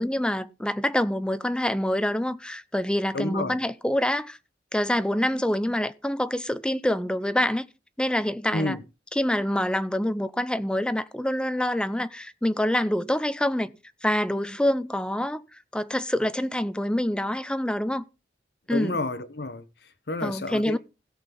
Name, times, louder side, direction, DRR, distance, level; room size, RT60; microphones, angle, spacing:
voice 1, 0.0-4.4 4.7-7.7 8.0-8.8 9.2-13.7 14.0-15.4 15.7-18.0 18.7-19.0 20.2-20.8, left 1 dB, 5° left, 0.6 m, -26 dB
voice 2, 3.1-3.5 8.5-8.8 18.7-20.8, left 2 dB, 65° left, 1.1 m, -30 dB
16.5 x 6.1 x 5.4 m
head